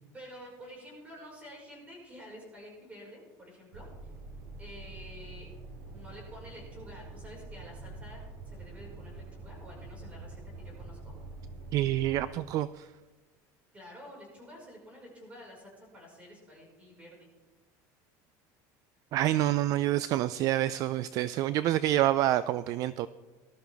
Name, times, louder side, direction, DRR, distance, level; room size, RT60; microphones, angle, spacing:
voice 1, 0.1-3.9 4.6-5.5 5.9-11.1 13.7-17.3, equal, 15° right, -2 dB, 5.2 m, -49 dB
sound 1, 3.7-12.2, right 3 dB, 75° right, 2.3 m, -45 dB
voice 2, 11.7-12.9 19.1-23.1, right 14 dB, 45° right, 15 dB, 0.3 m, -27 dB
19.5 x 12.5 x 3.5 m, 1.2 s
cardioid pair, 160°, 9 cm